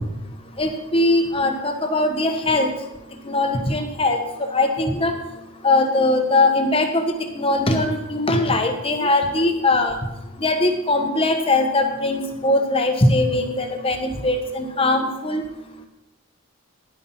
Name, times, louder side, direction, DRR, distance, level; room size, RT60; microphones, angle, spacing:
voice 1, 0.6-2.7 3.3-4.2 4.5-5.1 5.6-7.0 7.3-10.0 10.4-15.4, left 2 dB, 25° left, 4 dB, 1.2 m, -20 dB
11.0 x 9.4 x 4.3 m, 0.99 s
head